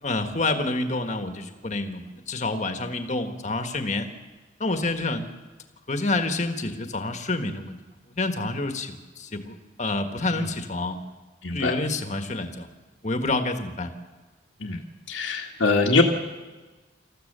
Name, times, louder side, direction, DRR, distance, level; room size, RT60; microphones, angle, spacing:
voice 1, 0.0-4.1 4.6-5.2 5.9-7.8 8.1-11.0 11.5-12.7 13.0-13.9, left 2 dB, 35° left, 7 dB, 1.6 m, -28 dB
voice 2, 11.4-11.7 14.6-14.8 15.1-16.0, left 3 dB, 85° left, -2 dB, 1.7 m, -22 dB
27.0 x 14.0 x 6.8 m, 1.3 s
head